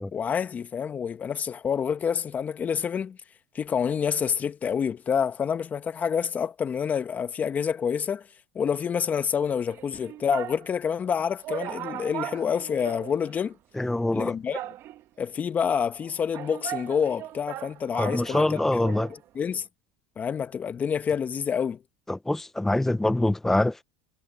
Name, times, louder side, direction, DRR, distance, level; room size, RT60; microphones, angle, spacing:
voice 1, 0.1-3.2 3.5-8.3 8.5-13.5 14.1-14.6 15.2-18.6 19.1-19.6 20.2-21.8, left 7 dB, 30° left, 1.5 m, -27 dB
sound 1, 9.7-10.7 11.1-11.2 11.4-13.5 13.8-13.9 14.5-15.2 16.0-19.2 19.4-19.5, right 13 dB, 50° right, 2.0 m, -38 dB
voice 2, 13.8-14.3 18.0-19.1 22.1-23.8, left 1 dB, 5° left, 0.8 m, -24 dB
supercardioid pair, 100°, 5 cm